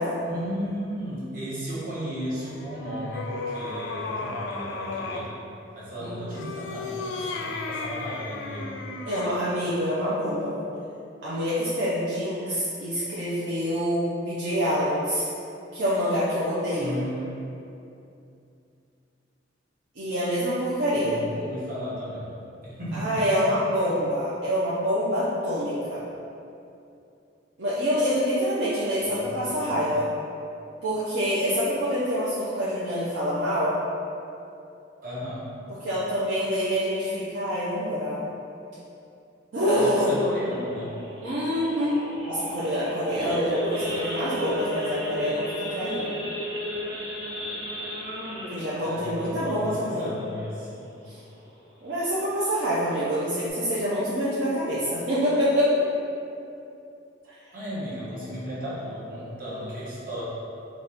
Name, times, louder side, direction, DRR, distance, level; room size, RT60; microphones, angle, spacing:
voice 1, 0.3-5.3 5.7-8.8 16.8-17.4 20.9-22.4 22.6-23.3 29.0-29.8 35.0-35.5 39.7-40.9 48.8-50.8 57.5-60.2, equal, 50° right, -9 dB, 1.1 m, -35 dB
sound 1, 2.3-5.3 6.3-9.4, left 3 dB, 75° left, 0.3 m, -34 dB
voice 2, 6.0-6.4 9.1-10.5 11.2-15.3 15.7-17.0 20.0-21.2 22.9-26.0 27.6-30.1 30.8-33.8 35.8-38.3 39.5-40.2 41.2-42.0 42.3-46.1 48.5-50.1 51.1-51.2 51.8-55.7, equal, 70° right, -10 dB, 0.6 m, -26 dB
Idling / Accelerating revving vroom / Sawing, 39.6-50.7 51.1-51.3 51.5-51.6 52.1-52.4 52.9-53.0 53.2-53.5, equal, 30° right, 1.2 m, -34 dB
4.0 x 2.4 x 3.4 m, 2.7 s
head